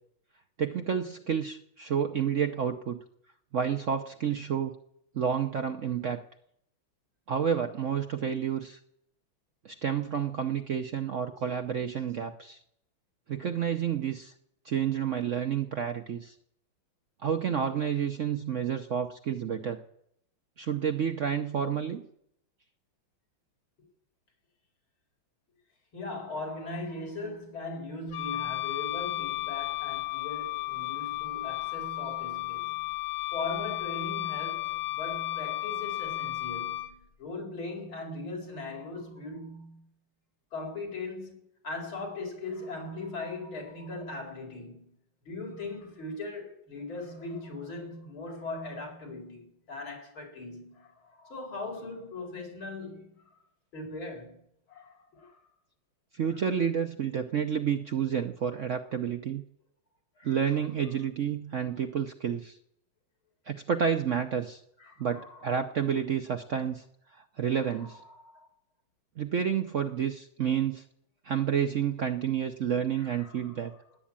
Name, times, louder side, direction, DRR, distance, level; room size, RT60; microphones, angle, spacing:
voice 1, 0.6-3.0 3.5-4.7 5.1-6.2 7.3-8.8 9.6-12.6 13.3-14.3 14.6-16.3 17.2-19.8 20.6-22.0 56.1-59.4 60.2-62.6 63.5-64.6 65.0-66.8 67.1-68.0 69.2-70.8 71.2-73.7, right 8 dB, 60° right, 0.8 m, -30 dB
voice 2, 25.9-32.9 33.3-39.8 40.5-44.9 45.2-53.4 53.7-54.4 54.7-55.4 56.2-56.5 60.2-61.1 64.8-65.7 67.4-68.5 72.9-74.0, left 2 dB, 90° left, 5.2 m, -40 dB
Wind instrument woodwind instrument, 28.1-36.9, left 18 dB, 55° left, 1.3 m, -34 dB
18.5 x 8.6 x 8.8 m
omnidirectional pair, 2.2 m